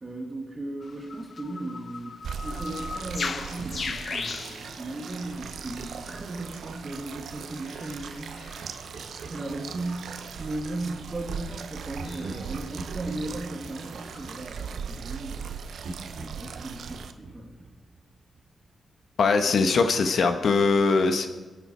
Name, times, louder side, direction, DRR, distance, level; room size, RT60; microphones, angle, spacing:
voice 1, 0.0-8.4 9.3-15.5 16.3-17.6, right 2 dB, 30° right, 1 dB, 2.1 m, -36 dB
sound 1, 0.8-14.6, left 4 dB, 55° left, 0.7 m, -40 dB
sound 2, 2.2-17.1, right 6 dB, 85° right, 0.8 m, -39 dB
Laughter, 8.6-10.8 11.9-15.4 15.8-18.6, right 2 dB, 65° right, 4.0 m, -43 dB
voice 2, 19.2-21.3, left 4 dB, 70° left, 7 dB, 1.2 m, -21 dB
22.0 x 8.9 x 4.5 m, 1.3 s
cardioid pair, 95°, 0 cm